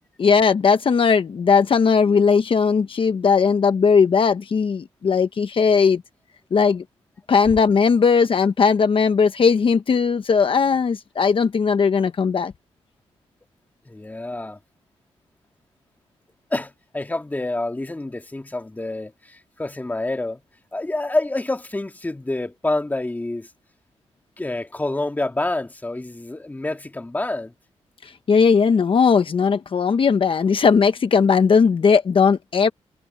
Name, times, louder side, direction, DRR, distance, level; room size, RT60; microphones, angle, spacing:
voice 1, 0.2-6.0 6.5-6.8 7.3-12.5 28.0-32.7, left 5 dB, 50° left, 1.1 m, -18 dB
voice 2, 13.9-14.6 16.5-20.4 20.7-23.5 24.4-27.5, left 2 dB, 15° left, 1.8 m, -27 dB
cardioid pair, 95°, 12 cm